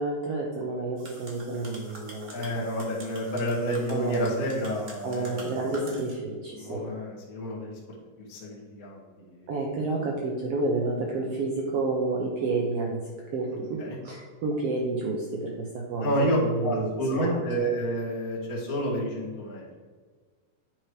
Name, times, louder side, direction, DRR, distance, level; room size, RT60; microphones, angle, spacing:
voice 1, 0.0-2.4 3.9-4.3 5.0-6.9 9.5-13.0 13.3-16.9 17.2-17.4, right 3 dB, 85° right, -1 dB, 1.3 m, -30 dB
sound 1, 1.0-6.1, right 1 dB, 55° right, 0.8 m, -46 dB
voice 2, 2.3-5.5 6.5-7.8 8.3-9.5 13.8-14.0 16.0-16.4 16.6-19.6, equal, 35° left, -5 dB, 1.6 m, -29 dB
9.5 x 4.5 x 4.8 m, 1.5 s
omnidirectional pair, 4.1 m